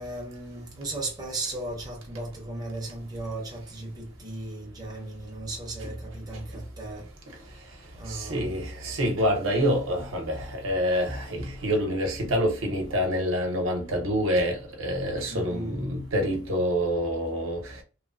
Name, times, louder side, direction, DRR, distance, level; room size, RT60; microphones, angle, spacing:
voice 1, 0.0-7.1 8.0-8.6 15.3-15.8, right 2 dB, 20° right, 0.6 m, -36 dB
voice 2, 8.1-17.8, equal, 70° right, 0.8 m, -27 dB
3.0 x 2.1 x 2.5 m
head